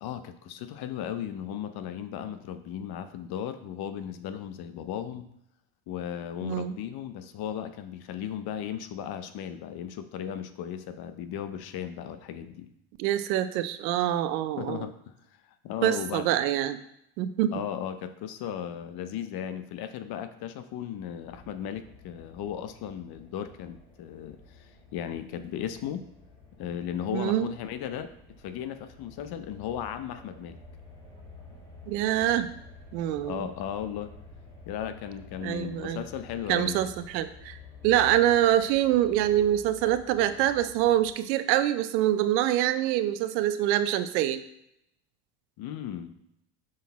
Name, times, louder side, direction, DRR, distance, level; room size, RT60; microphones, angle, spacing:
voice 1, 0.0-5.3 5.9-12.7 14.6-15.2 15.6-16.3 17.5-26.1 26.5-30.6 33.2-34.1 34.7-36.9 45.6-46.1, left 9 dB, 50° left, 10 dB, 0.7 m, -36 dB
voice 2, 6.4-6.7 13.0-14.9 15.8-16.8 17.2-17.5 27.1-27.5 31.9-32.5 32.9-33.5 35.4-36.0 36.5-37.6 37.8-44.4, right 12 dB, 90° right, 12 dB, 0.7 m, -25 dB
sound 1, 21.3-41.1, left 3 dB, 10° left, 2.6 m, -50 dB
6.4 x 4.1 x 4.1 m, 0.77 s
supercardioid pair, 105°, 50 cm